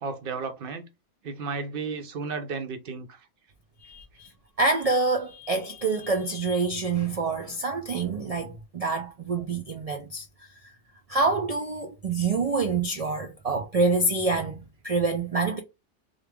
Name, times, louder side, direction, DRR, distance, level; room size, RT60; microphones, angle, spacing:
voice 1, 0.0-0.9 1.2-3.3, right 4 dB, 55° right, 0.8 m, -33 dB
voice 2, 3.8-4.3 4.6-10.3 10.6-10.7 11.1-15.6, right 3 dB, 75° right, 0.3 m, -26 dB
3.5 x 2.4 x 3.3 m
omnidirectional pair, 1.2 m